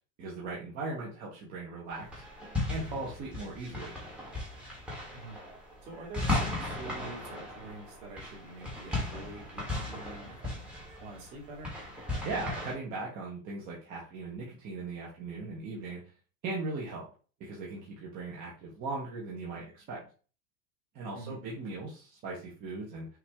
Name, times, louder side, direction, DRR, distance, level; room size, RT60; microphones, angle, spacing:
voice 1, 0.2-2.2 2.7-3.9 12.2-16.0 16.4-17.0 17.4-20.0 20.9-23.1, right 3 dB, 25° right, -4 dB, 0.9 m, -38 dB
sound 1, 1.9-12.7, left 2 dB, 5° right, 1.0 m, -37 dB
voice 2, 5.8-10.6 11.0-11.8 21.1-21.4, right 2 dB, 40° right, -2 dB, 2.1 m, -46 dB
5.8 x 2.6 x 3.4 m, 0.37 s
supercardioid pair, 175°, 40 cm